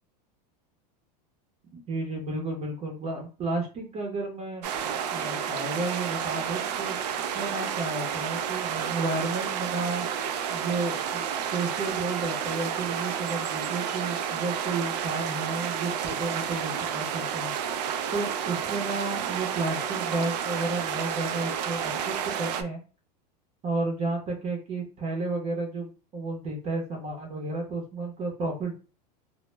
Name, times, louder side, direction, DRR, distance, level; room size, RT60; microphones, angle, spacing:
voice 1, 1.7-4.6 5.1-7.0 7.3-10.1 10.5-11.2 11.5-17.5 18.1-22.8 23.6-28.7, right 3 dB, 30° right, 1 dB, 0.7 m, -32 dB
sound 1, 4.6-22.6, right 8 dB, 85° right, 0.4 m, -31 dB
2.0 x 2.0 x 3.2 m, 0.34 s
supercardioid pair, 135°, 21 cm